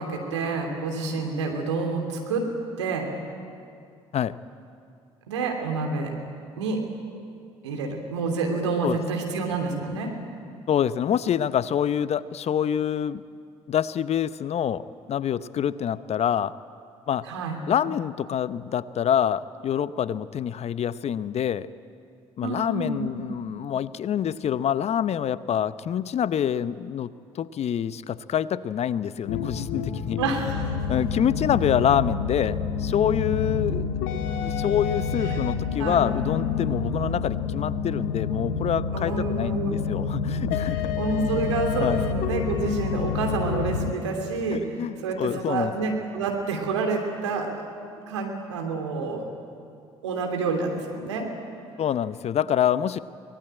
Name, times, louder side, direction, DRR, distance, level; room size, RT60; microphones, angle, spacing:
voice 1, 0.0-2.5 2.8-3.1 5.3-6.1 6.6-6.8 7.6-10.1 17.2-17.6 22.4-23.3 30.2-30.7 35.2-35.4 35.8-36.0 38.9-40.1 40.7-47.5 48.1-49.3 50.0-51.3, right 4 dB, 85° right, 2 dB, 3.0 m, -28 dB
voice 2, 10.7-13.2 13.7-16.5 17.1-17.3 17.7-21.7 22.4-27.1 27.3-30.2 30.9-33.9 34.4-40.9 41.3-41.5 41.8-42.1 44.5-45.7 51.8-53.0, left 9 dB, 45° left, 16 dB, 0.8 m, -26 dB
sound 1, 29.3-43.9, left 6 dB, 70° left, 1.3 m, -28 dB
24.0 x 19.5 x 8.9 m, 2.4 s
hypercardioid pair, 50°, 15 cm